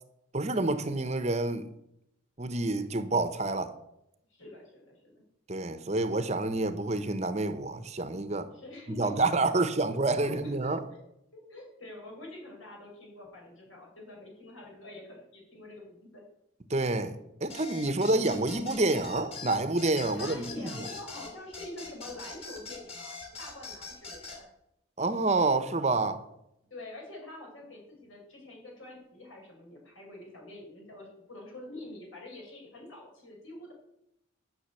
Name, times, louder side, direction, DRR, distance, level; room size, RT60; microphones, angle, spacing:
voice 1, 0.3-1.7 2.4-3.7 5.5-8.5 8.9-10.8 16.7-20.7 25.0-26.2, right 2 dB, 35° right, 0.8 m, -28 dB
voice 2, 4.3-5.2 8.5-9.3 9.5-11.0 11.3-16.2 20.1-24.5 26.7-33.7, left 2 dB, 80° left, 5.3 m, -46 dB
sound 1, 17.5-24.4, left 4 dB, 30° left, 2.9 m, -43 dB
12.0 x 6.3 x 8.2 m
head